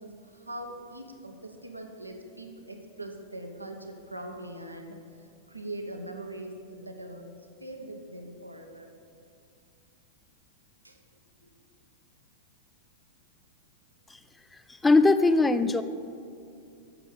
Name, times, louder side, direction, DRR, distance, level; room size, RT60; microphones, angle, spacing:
voice 1, 0.0-5.0 5.5-8.9 10.8-11.0 11.4-11.5, right 1 dB, 90° right, 3 dB, 1.0 m, -41 dB
voice 2, 14.8-15.8, left 3 dB, 10° left, 11 dB, 0.3 m, -20 dB
9.0 x 6.5 x 6.7 m, 2.4 s
figure-of-eight pair, 95°, 0 cm